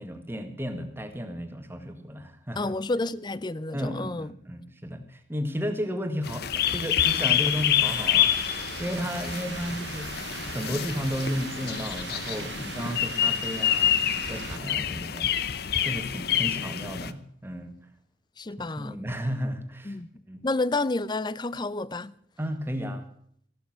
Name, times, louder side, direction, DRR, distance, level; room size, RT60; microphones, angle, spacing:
voice 1, 0.0-2.7 3.7-10.1 10.5-15.3 15.8-17.7 18.8-20.0 20.3-20.4 22.4-23.1, equal, 10° right, 1.7 m, -33 dB
voice 2, 2.6-4.3 18.4-19.0 19.9-20.1 20.4-22.1, left 2 dB, 25° left, 0.5 m, -30 dB
sound 1, 6.2-17.1, left 10 dB, 55° left, 0.8 m, -27 dB
sound 2, 7.0-14.6, right 6 dB, 65° right, 1.0 m, -40 dB
15.0 x 11.5 x 6.3 m
head